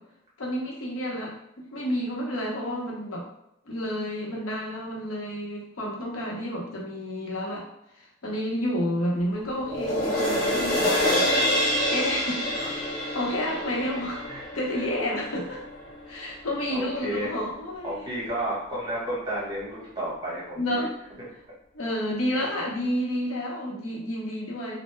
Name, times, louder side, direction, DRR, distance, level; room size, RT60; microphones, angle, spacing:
voice 1, 0.4-3.2 3.7-7.6 7.9-11.3 11.8-12.8 13.1-14.2 14.5-15.7 16.1-18.1 20.6-20.9 21.7-24.8, equal, 85° left, -3 dB, 0.7 m, -30 dB
sound 1, 9.6-16.2 16.6-16.7, equal, 20° left, 0.7 m, -27 dB
voice 2, 13.5-14.4 14.7-14.8 16.7-17.3 17.8-20.9 21.2-21.3 22.3-22.7, equal, 20° right, -6 dB, 0.9 m, -33 dB
2.1 x 2.0 x 3.0 m, 0.84 s
head